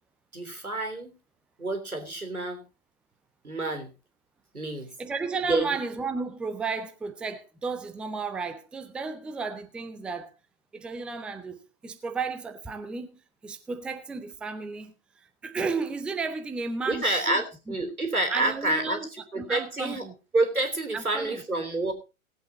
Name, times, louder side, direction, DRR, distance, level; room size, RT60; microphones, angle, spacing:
voice 1, 0.3-1.1 1.6-2.6 3.4-3.9 4.5-4.9 5.5-5.8 16.9-20.1 20.3-21.9, right 2 dB, 90° right, 3.3 m, -28 dB
voice 2, 5.0-10.3 10.7-13.1 13.4-17.7 18.3-19.1 19.4-20.1 20.9-21.4, right 4 dB, ahead, 0.5 m, -33 dB
18.5 x 8.1 x 4.1 m
figure-of-eight pair, 110°, 42 cm